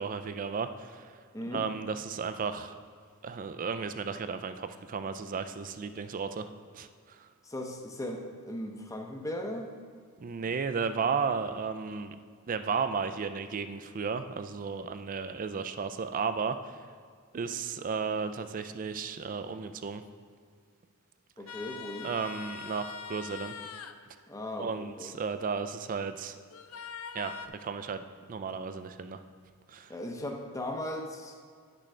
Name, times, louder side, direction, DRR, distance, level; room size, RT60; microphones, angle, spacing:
voice 1, 0.0-1.2 1.5-2.8 3.2-7.3 10.2-12.2 12.5-16.8 17.3-20.0 22.0-23.5 24.6-26.4 27.1-28.0 28.3-29.2 29.7-29.9, right 5 dB, 40° right, 10 dB, 0.4 m, -34 dB
voice 2, 1.3-1.7 7.4-9.7 21.4-22.1 24.3-25.1 29.9-31.4, left 1 dB, 15° left, 3 dB, 0.7 m, -37 dB
sound 1, 21.5-24.0 26.5-27.5, left 6 dB, 70° left, 0.4 m, -42 dB
10.0 x 6.2 x 3.3 m, 2.1 s
head